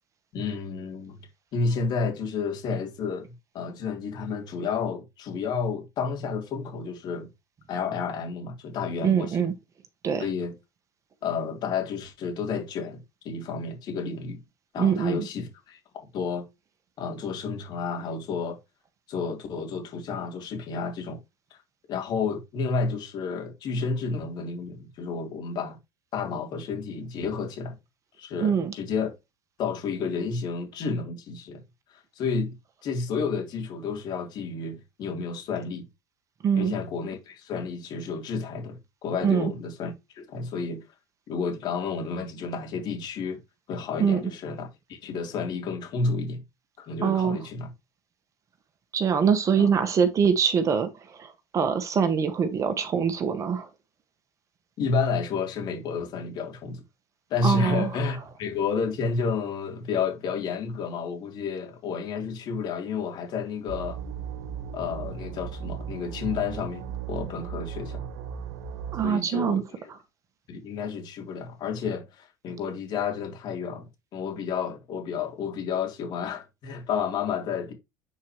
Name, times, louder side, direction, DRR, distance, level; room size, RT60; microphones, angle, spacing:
voice 1, 0.3-1.2 1.5-7.3 7.7-9.5 10.2-10.5 11.2-14.4 14.7-16.5 17.0-18.6 19.1-21.2 21.5-21.6 21.9-25.8 26.1-27.8 28.2-29.1 29.6-31.6 31.9-32.5 32.8-35.9 36.5-40.8 41.3-43.4 43.7-46.4 46.8-47.7 49.6-49.7 54.8-56.8 57.3-64.0 64.7-68.1 69.0-69.9 70.5-77.7, left 5 dB, 55° left, 3.2 m, -31 dB
voice 2, 9.0-9.5 10.0-10.2 14.8-15.3 28.4-28.7 36.4-36.7 39.2-39.5 44.0-44.2 47.0-47.4 48.9-53.7 57.4-57.9 68.9-69.6, right 7 dB, 40° right, 1.5 m, -24 dB
sound 1, 63.7-69.1, right 8 dB, 80° right, 1.5 m, -36 dB
8.3 x 4.7 x 3.0 m
supercardioid pair, 95°, 9 cm